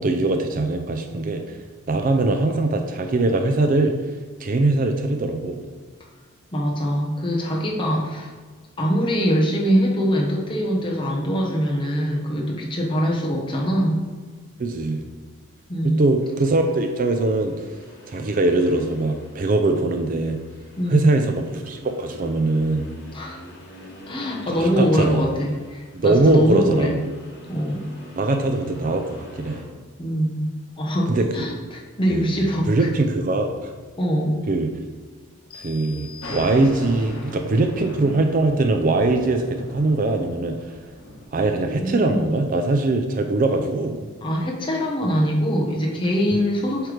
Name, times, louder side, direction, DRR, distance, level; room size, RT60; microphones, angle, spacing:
voice 1, 0.0-1.6 1.9-4.0 4.4-5.6 14.6-15.0 15.8-17.5 18.1-20.4 20.9-22.9 24.5-25.3 25.9-27.0 28.1-29.6 31.1-31.5 32.1-32.4 32.6-33.7 34.5-34.7 35.5-40.8 41.3-44.1, right 2 dB, 40° right, 5 dB, 0.4 m, -21 dB
voice 2, 6.5-8.3 8.8-14.0 15.7-16.0 20.8-21.1 23.1-23.4 24.1-27.0 27.5-27.8 30.0-32.9 34.0-34.4 41.8-42.3 44.2-46.9, equal, 20° left, -1 dB, 1.0 m, -23 dB
Accelerating revving vroom, 16.2-29.6, equal, 50° left, 1.5 m, -46 dB
sound 1, 35.5-37.2, left 7 dB, 90° left, 1.0 m, -43 dB
Thunder, 36.2-41.2, left 1 dB, 70° left, 1.5 m, -39 dB
7.6 x 3.3 x 4.9 m, 1.5 s
head